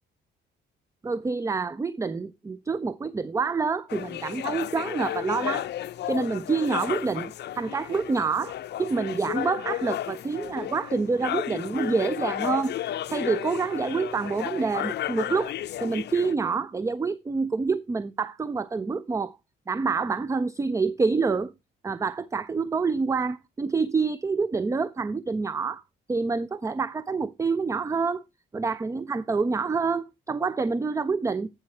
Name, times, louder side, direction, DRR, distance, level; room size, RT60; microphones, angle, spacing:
voice 1, 1.0-5.7 6.1-12.7 13.1-15.5 15.8-19.4 19.7-21.5 21.8-25.8 26.1-28.2 28.5-31.5, right 4 dB, 15° right, 0.4 m, -27 dB
sound 1, 3.9-16.3, left 12 dB, 60° left, 0.5 m, -33 dB
10.5 x 4.8 x 4.3 m
cardioid pair, 90°, 20 cm